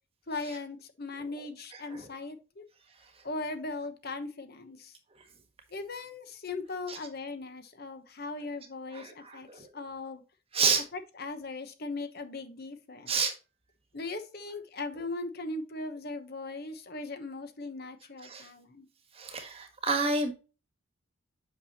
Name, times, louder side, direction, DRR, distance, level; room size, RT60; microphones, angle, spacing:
voice 1, 0.3-2.6 3.2-4.9 5.7-10.2 10.9-13.2 13.9-18.9, left 3 dB, 50° left, 1.0 m, -39 dB
voice 2, 1.7-2.1 6.9-7.0 8.9-9.7 10.5-10.8 13.1-13.3 18.2-18.5 19.1-20.3, right 4 dB, 25° right, 1.4 m, -30 dB
8.6 x 5.9 x 2.9 m
head